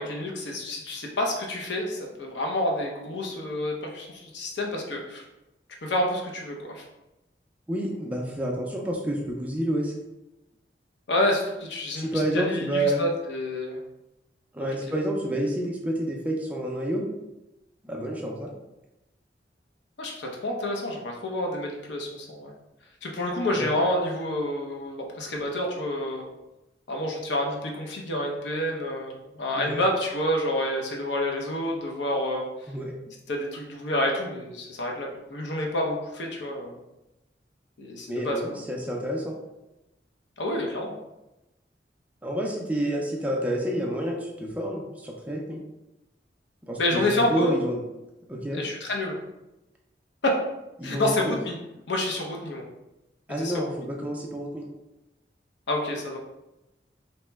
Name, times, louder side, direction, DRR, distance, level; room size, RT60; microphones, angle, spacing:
voice 1, 0.0-5.2 5.8-6.8 11.1-13.8 20.0-22.5 23.0-26.3 26.9-32.5 33.3-36.8 37.8-38.4 40.4-40.9 46.8-47.6 48.5-49.2 50.2-50.3 50.8-51.6 51.9-52.7 53.4-53.5 55.7-56.2, left 1 dB, 80° left, 0 dB, 0.6 m, -28 dB
voice 2, 7.7-9.9 12.0-13.0 14.5-17.1 17.8-18.5 23.5-23.7 29.6-29.8 32.7-32.9 38.1-39.4 42.2-45.6 46.7-47.8 48.3-48.6 50.8-51.4 53.3-54.7, right 1 dB, 10° right, -1 dB, 0.4 m, -29 dB
2.9 x 2.1 x 3.3 m, 0.96 s
head